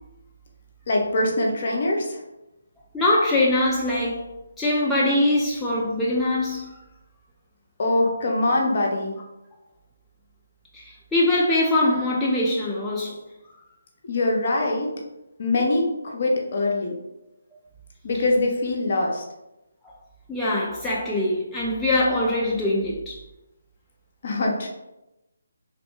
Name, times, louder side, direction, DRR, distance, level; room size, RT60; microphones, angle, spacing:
voice 1, 0.9-2.2 7.8-9.2 14.0-14.9 15.4-16.9 18.0-19.2 24.2-24.7, left 2 dB, 45° left, 0 dB, 0.6 m, -23 dB
voice 2, 2.9-4.3 4.6-6.7 8.6-8.7 10.7-13.2 20.3-23.1, left 1 dB, 5° left, -7 dB, 0.4 m, -23 dB
3.1 x 2.1 x 3.0 m, 0.95 s
figure-of-eight pair, 145°, 0 cm